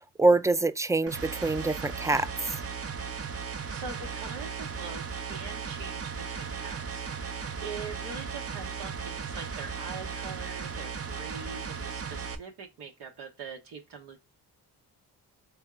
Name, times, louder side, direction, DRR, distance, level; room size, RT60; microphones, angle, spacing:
voice 1, 0.2-2.3, right 2 dB, 10° right, 0.3 m, -24 dB
sound 1, 1.1-12.4, right 6 dB, 35° right, 0.7 m, -36 dB
voice 2, 3.7-7.0 7.6-14.2, right 5 dB, 75° right, 1.0 m, -43 dB
3.5 x 3.4 x 3.6 m
supercardioid pair, 55°, 40 cm